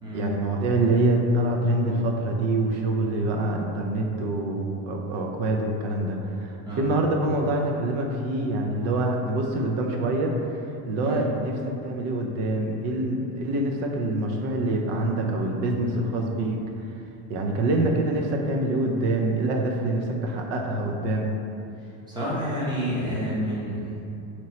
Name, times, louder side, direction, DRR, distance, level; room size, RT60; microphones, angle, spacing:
voice 1, 0.1-10.6 10.9-16.6 17.3-21.3, right 2 dB, 50° right, 1 dB, 0.5 m, -25 dB
voice 2, 22.1-24.0, equal, 10° right, -8 dB, 0.7 m, -29 dB
3.0 x 2.8 x 4.1 m, 2.7 s
cardioid pair, 160°, 34 cm